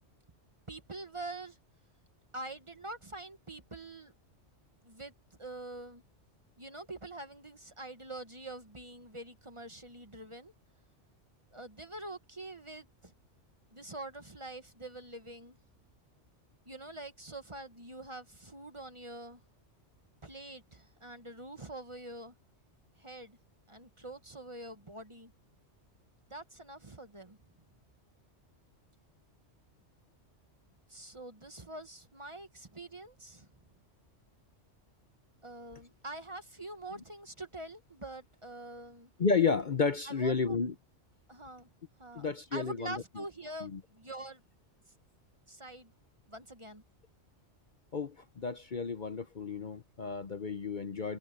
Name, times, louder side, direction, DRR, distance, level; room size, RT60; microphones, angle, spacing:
voice 1, 0.7-1.6 2.3-4.1 4.8-5.1 5.4-6.0 6.6-10.5 11.5-13.1 13.7-15.6 16.7-19.4 20.2-22.3 23.0-23.4 23.7-25.3 26.3-27.4 30.9-33.5 35.4-39.1 40.1-40.6 41.3-41.7 42.0-44.4 45.5-45.9 46.3-46.8, right 2 dB, 25° right, 1.2 m, -45 dB
voice 2, 39.2-40.7 42.1-43.0 43.6-43.8 47.9-51.2, left 5 dB, 45° left, 0.9 m, -32 dB
open air
omnidirectional pair, 1.2 m